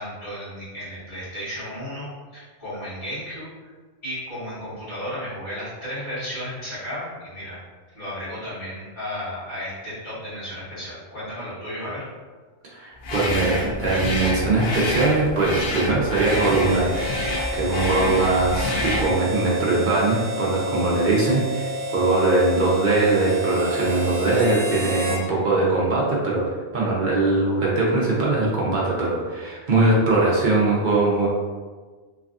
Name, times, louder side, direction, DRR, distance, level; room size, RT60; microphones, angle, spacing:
voice 1, 0.0-3.7 4.0-7.6 7.9-12.1, equal, 45° left, -12 dB, 1.7 m, -34 dB
voice 2, 12.6-17.0 17.5-31.3, right 2 dB, 50° right, -5 dB, 0.7 m, -21 dB
sound 1, 13.0-19.2, left 1 dB, 65° left, 0.8 m, -28 dB
Harmonica, 16.2-25.3, equal, 85° right, 0.9 m, -30 dB
3.2 x 2.3 x 2.4 m, 1.4 s
omnidirectional pair, 1.2 m